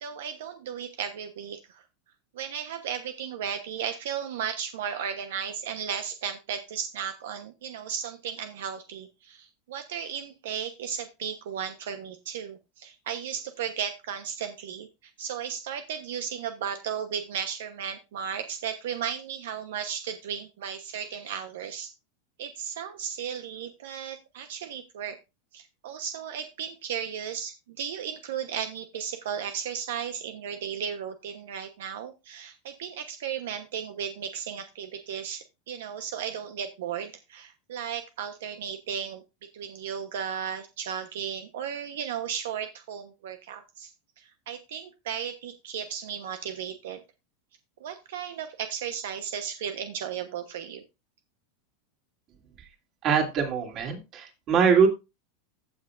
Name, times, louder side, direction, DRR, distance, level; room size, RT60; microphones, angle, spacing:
voice 1, 0.0-1.8 2.3-14.9 15.2-21.9 22.4-25.2 25.5-39.2 39.5-43.9 44.2-47.0 47.8-50.8, right 8 dB, 80° right, 8 dB, 1.0 m, -35 dB
voice 2, 53.0-54.9, right 6 dB, 40° right, 3 dB, 2.9 m, -23 dB
15.5 x 6.1 x 2.6 m, 0.26 s
supercardioid pair, 135°, 0 cm